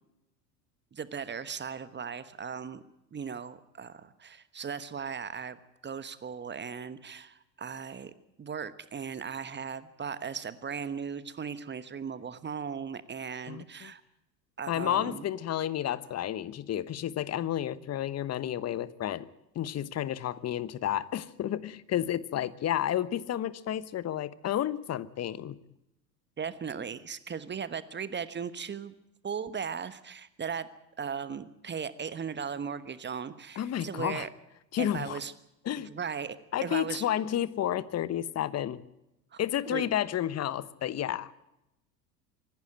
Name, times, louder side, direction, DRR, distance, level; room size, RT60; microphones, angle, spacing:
voice 1, 0.9-2.8 3.1-5.6 5.8-8.1 8.4-14.0 14.6-15.2 26.4-28.9 29.2-30.7 31.0-34.3 34.8-35.3 35.8-37.1 39.3-39.4 39.7-39.8, right 6 dB, 20° right, 14 dB, 1.2 m, -37 dB
voice 2, 13.5-13.9 14.7-19.3 19.5-25.6 33.6-34.3 34.7-35.2 35.6-36.0 36.5-38.8 39.4-41.3, left 11 dB, 30° left, 18 dB, 1.1 m, -31 dB
25.5 x 12.0 x 8.8 m, 0.89 s
hypercardioid pair, 75°, 50 cm